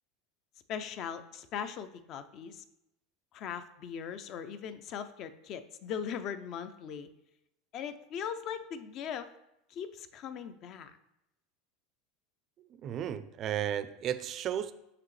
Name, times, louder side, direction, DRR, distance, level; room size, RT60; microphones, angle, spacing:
voice 1, 0.7-2.6 3.3-7.1 7.7-9.3 9.7-11.0, left 8 dB, 45° left, 0.4 m, -39 dB
voice 2, 12.6-14.7, right 10 dB, 40° right, 0.4 m, -34 dB
5.7 x 5.7 x 3.2 m
supercardioid pair, 130°, 0 cm